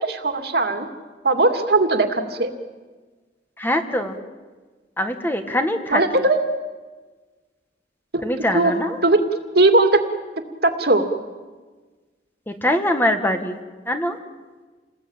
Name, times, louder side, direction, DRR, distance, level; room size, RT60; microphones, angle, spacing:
voice 1, 0.0-0.9 1.2-2.5 5.9-6.4 8.1-8.2 8.5-8.7 9.0-9.2 9.5-10.0 10.6-11.1, right 2 dB, 60° right, 6 dB, 2.5 m, -18 dB
voice 2, 3.6-4.2 5.0-6.0 8.2-9.0 12.5-13.6 13.9-14.2, left 1 dB, 10° left, 6 dB, 1.9 m, -23 dB
29.0 x 20.5 x 9.0 m, 1.3 s
head